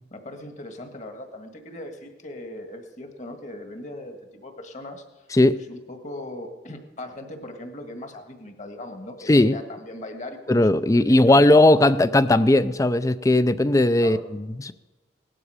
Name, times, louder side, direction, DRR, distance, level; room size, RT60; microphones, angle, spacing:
voice 1, 0.1-5.2 5.7-10.7 11.1-11.8 14.0-14.2, left 1 dB, 40° left, 5 dB, 1.7 m, -39 dB
voice 2, 10.5-14.2 14.6-14.7, left 1 dB, 15° left, 14 dB, 0.4 m, -17 dB
17.5 x 12.5 x 5.0 m, 1.1 s
head